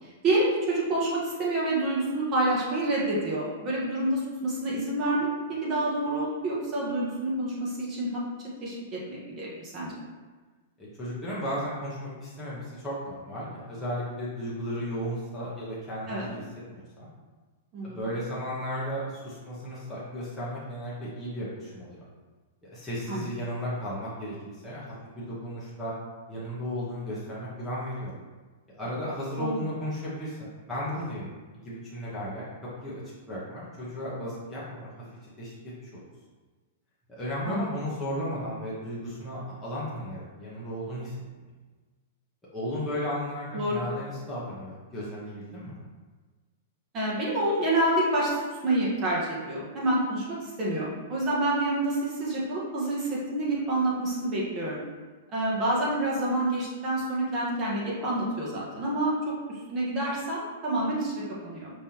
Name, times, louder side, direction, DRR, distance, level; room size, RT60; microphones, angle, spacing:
voice 1, 0.0-8.1 8.6-9.0 9.3-9.9 16.1-16.3 17.7-18.0 23.1-23.2 29.4-29.5 37.4-37.7 43.5-43.8 46.9-54.8 55.3-59.1 59.7-61.7, right 1 dB, 25° right, -6 dB, 1.3 m, -28 dB
voice 2, 10.8-16.4 16.7-17.1 17.8-22.0 22.7-25.9 26.3-28.1 28.8-31.3 31.6-32.5 32.8-32.9 33.3-36.1 37.1-41.2 42.5-45.8, equal, 5° left, -10 dB, 1.1 m, -35 dB
5.3 x 3.4 x 2.9 m, 1.4 s
hypercardioid pair, 150°, 0 cm